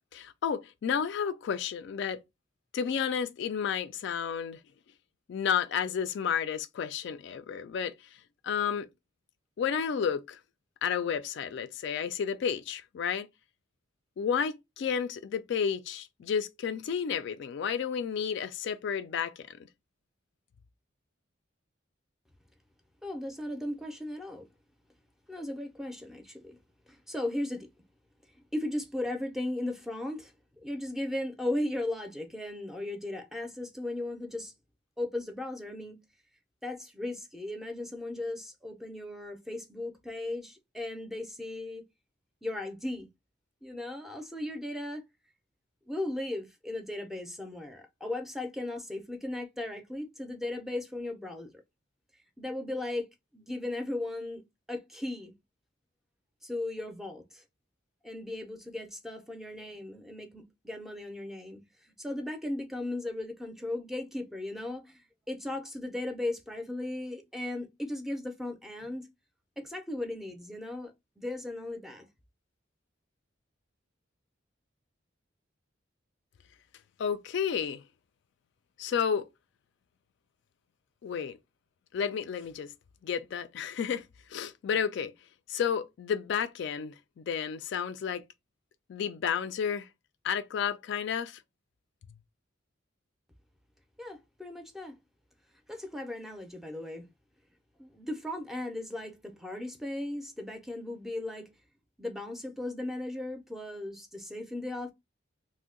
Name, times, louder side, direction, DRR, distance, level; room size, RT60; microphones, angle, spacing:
voice 1, 0.1-2.2 2.7-4.6 5.3-7.9 8.4-8.9 9.6-10.4 10.8-13.3 14.2-19.7 77.0-77.8 78.8-79.3 81.0-81.4 81.9-82.7 83.0-85.1 85.5-88.2 88.9-89.9 90.2-91.4, left 7 dB, 60° left, 0.3 m, -31 dB
voice 2, 23.0-24.5 25.3-26.6 26.9-27.7 28.5-30.3 30.6-34.5 35.0-36.0 36.6-41.8 42.4-43.1 43.6-45.0 45.9-51.5 52.4-55.3 56.4-57.4 58.0-61.6 62.0-69.1 69.6-70.9 71.2-72.1 94.0-95.0 95.7-97.1 97.8-101.5 102.0-104.9, left 1 dB, ahead, 0.5 m, -36 dB
2.6 x 2.1 x 3.6 m
head